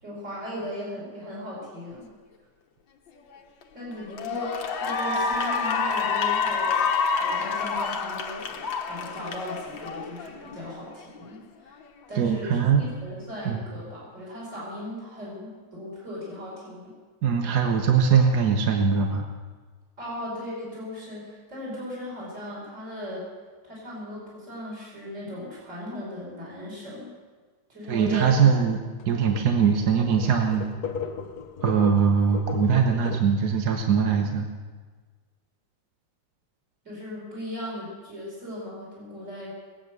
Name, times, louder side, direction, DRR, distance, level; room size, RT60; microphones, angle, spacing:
voice 1, 0.0-2.1 3.7-11.8 12.1-16.9 20.0-23.3 23.6-27.1 27.7-28.3 36.8-39.5, left 1 dB, 40° right, -6 dB, 5.6 m, -37 dB
Cheering / Applause, 3.3-3.6 4.1-10.6, left 5 dB, 80° left, 1.8 m, -27 dB
voice 2, 12.1-12.9 13.4-13.6 17.2-19.3 27.9-28.8 29.1-30.7 31.6-34.5, right 6 dB, 60° right, 3 dB, 1.6 m, -21 dB
sound 1, 28.2-28.5 29.0-29.1 29.3-29.5 29.8-33.2, left 6 dB, 60° left, 1.3 m, -37 dB
20.5 x 9.0 x 6.7 m, 1.5 s
omnidirectional pair, 2.0 m